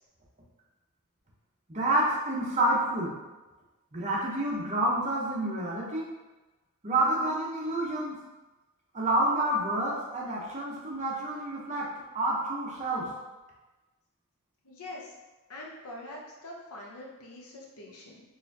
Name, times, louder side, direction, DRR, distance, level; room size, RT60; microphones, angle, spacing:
voice 1, 1.7-3.1 3.9-6.1 6.8-8.2 8.9-11.9 12.1-13.1, right 1 dB, 30° right, -4 dB, 0.8 m, -28 dB
voice 2, 14.6-15.1 15.5-18.2, left 1 dB, 75° left, -2 dB, 0.8 m, -44 dB
4.1 x 2.6 x 2.7 m, 1.1 s
head